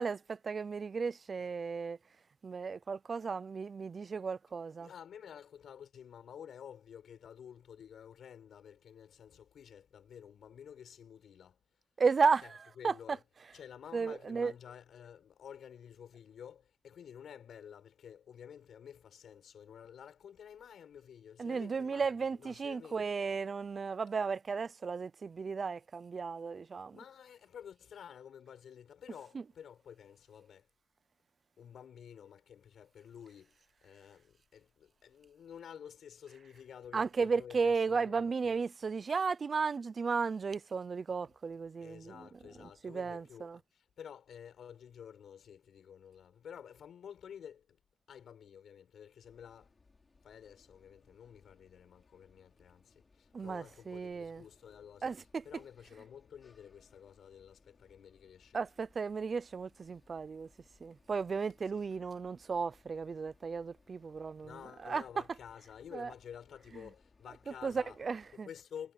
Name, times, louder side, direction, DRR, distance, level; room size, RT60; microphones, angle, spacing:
voice 1, 0.0-2.0 2.4-4.9 12.0-12.6 12.8-12.9 13.9-14.5 21.4-27.0 36.9-42.3 42.8-43.6 53.3-54.4 55.0-55.4 58.5-60.5 60.8-64.6 64.8-65.0 65.9-66.1 67.6-68.5, right 5 dB, 45° right, 0.6 m, -34 dB
voice 2, 4.8-11.6 12.4-12.5 12.8-13.2 13.5-23.0 26.9-30.7 31.6-38.6 41.8-47.8 48.1-49.7 50.2-55.2 55.4-58.6 61.7-61.8 64.4-68.0 68.3-68.9, left 8 dB, 80° left, 5.5 m, -51 dB
sound 1, 49.2-68.4, left 4 dB, 35° left, 6.4 m, -67 dB
wide cardioid pair, 115°, 0 cm